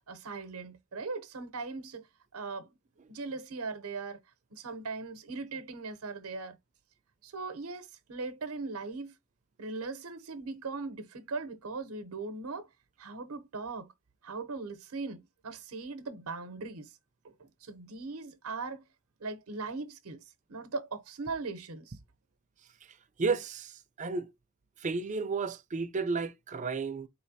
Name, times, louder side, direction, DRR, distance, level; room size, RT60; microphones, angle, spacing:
voice 1, 0.1-2.1 2.3-2.7 3.1-4.2 4.5-6.6 7.2-9.1 9.6-12.7 13.0-13.9 14.2-16.9 17.2-18.8 19.2-20.2 20.5-22.0, right 3 dB, 85° right, 0.8 m, -39 dB
voice 2, 23.2-24.3 24.8-27.1, right 4 dB, 35° right, 0.5 m, -32 dB
4.3 x 3.2 x 2.6 m
head